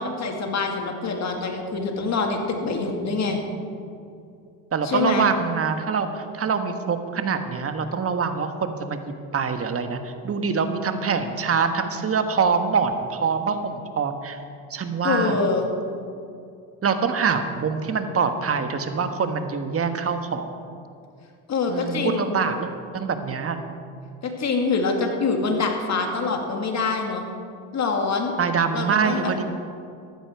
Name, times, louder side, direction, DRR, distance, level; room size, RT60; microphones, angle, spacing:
voice 1, 0.0-3.4 4.8-5.3 15.0-15.7 21.5-22.4 24.2-27.2 27.7-28.3 28.7-29.3, left 4 dB, 40° left, 3 dB, 2.5 m, -25 dB
voice 2, 3.1-3.5 4.7-14.4 14.7-15.4 16.8-20.5 21.7-23.6 28.4-29.4, right 5 dB, 35° right, 7 dB, 1.4 m, -25 dB
14.5 x 12.0 x 4.7 m, 2.5 s
supercardioid pair, 85°, 41 cm